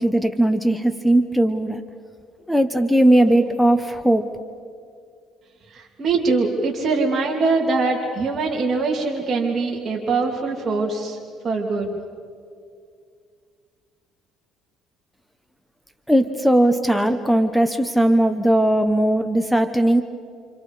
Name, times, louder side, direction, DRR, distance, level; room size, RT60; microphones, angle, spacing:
voice 1, 0.0-1.8 2.5-4.3 16.1-20.0, right 1 dB, ahead, 8 dB, 1.2 m, -18 dB
voice 2, 5.7-11.2 11.4-12.0, right 3 dB, 35° right, -2 dB, 3.2 m, -23 dB
30.0 x 28.0 x 5.1 m, 2.2 s
cardioid pair, 115°, 0 cm